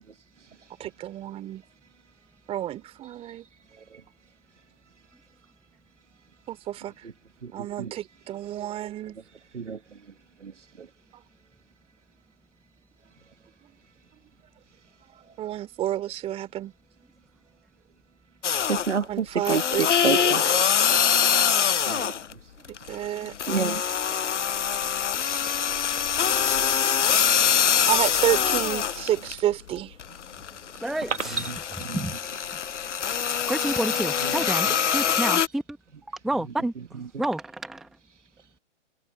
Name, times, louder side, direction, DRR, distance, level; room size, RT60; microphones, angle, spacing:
voice 1, 0.8-1.6 2.5-3.5 6.5-7.1 7.5-9.2 13.6-13.7 15.4-16.7 19.1-20.7 22.0-22.2 22.7-23.4 27.9-30.0, right 12 dB, 15° right, 2.8 m, -30 dB
voice 2, 7.4-7.9 9.5-9.8 10.4-10.5 10.8-10.9 18.7-19.6 20.0-20.4 21.9-22.1 23.5-23.8 31.4-32.0, right 6 dB, 75° right, 1.4 m, -29 dB
sound 1, 18.4-19.0 19.4-22.3 22.6-29.4 29.8-35.5, left 8 dB, 75° left, 0.7 m, -24 dB
voice 3, 30.8-31.5 31.9-32.1 33.5-35.8 36.2-36.7 37.2-37.9, right 1 dB, ahead, 0.9 m, -29 dB
figure-of-eight pair, 135°, 36 cm